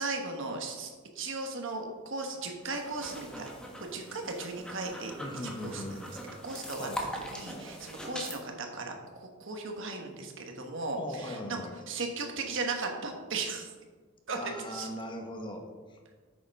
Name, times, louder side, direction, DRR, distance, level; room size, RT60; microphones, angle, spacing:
voice 1, 0.0-3.5 3.8-5.1 5.6-5.8 6.4-6.9 7.1-11.6 11.9-13.7 14.3-14.4 14.7-14.9, right 3 dB, 65° right, 3 dB, 1.4 m, -36 dB
sound 1, 2.6-8.4, equal, 5° left, 1.4 m, -42 dB
voice 2, 5.2-6.2 6.8-7.0 11.0-11.7 14.3-16.0, left 1 dB, 25° left, 3 dB, 1.1 m, -39 dB
8.3 x 6.7 x 5.5 m, 1.4 s
head